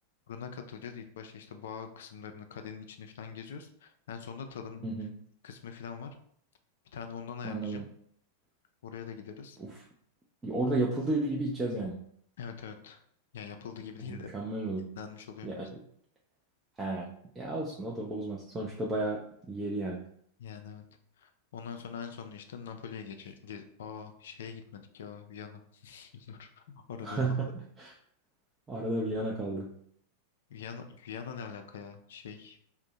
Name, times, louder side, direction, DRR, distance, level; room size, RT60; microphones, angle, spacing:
voice 1, 0.3-4.8 5.4-6.2 6.9-7.8 8.8-9.6 12.4-13.0 13.3-14.3 15.0-15.7 20.4-20.9 21.2-27.3 30.5-32.6, left 6 dB, 60° left, 7 dB, 0.4 m, -43 dB
voice 2, 7.4-7.8 9.6-9.7 10.4-12.0 14.1-14.9 15.4-15.7 16.8-17.1 17.4-20.0 27.0-27.5 27.8-27.9 28.7-29.7, right 2 dB, 15° right, -3 dB, 0.4 m, -32 dB
2.5 x 2.1 x 3.9 m, 0.66 s
figure-of-eight pair, 90°, 0 cm